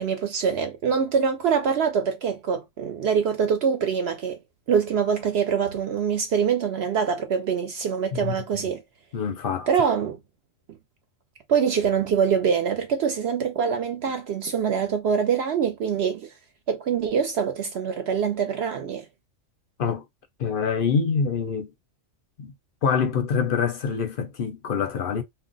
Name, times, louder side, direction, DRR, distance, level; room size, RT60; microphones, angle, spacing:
voice 1, 0.0-4.4 4.7-8.8 9.7-10.2 11.5-16.3 16.7-19.0, right 7 dB, 65° right, 0.7 m, -24 dB
voice 2, 9.1-9.7 19.8-20.0 20.4-21.7 22.4-22.5 22.8-25.2, left 6 dB, 55° left, 0.6 m, -25 dB
2.4 x 2.1 x 3.8 m
omnidirectional pair, 1.4 m